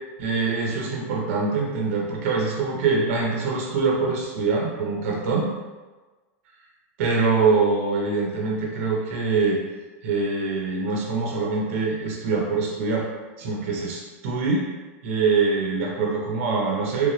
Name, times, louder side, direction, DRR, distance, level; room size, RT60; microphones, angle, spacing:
voice 1, 0.2-5.5 7.0-9.6 10.0-13.1 13.4-14.7 15.0-17.1, right 4 dB, 65° right, -2 dB, 1.0 m, -24 dB
3.3 x 2.4 x 3.3 m, 1.3 s
supercardioid pair, 115°, 8 cm